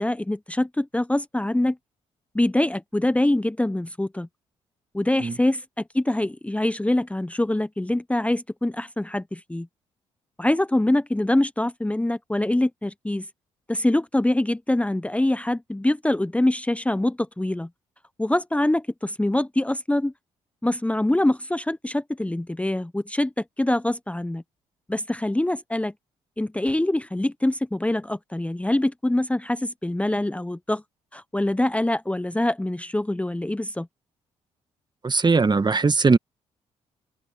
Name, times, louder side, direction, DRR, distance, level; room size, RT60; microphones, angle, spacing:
voice 1, 0.0-1.8 2.3-4.3 4.9-9.7 10.4-13.3 13.7-17.7 18.2-20.1 20.6-24.4 24.9-25.9 26.4-30.8 31.1-33.9, left 1 dB, 10° left, 1.0 m, -24 dB
voice 2, 35.0-36.2, right 4 dB, 30° right, 1.7 m, -19 dB
hypercardioid pair, 50°, 14 cm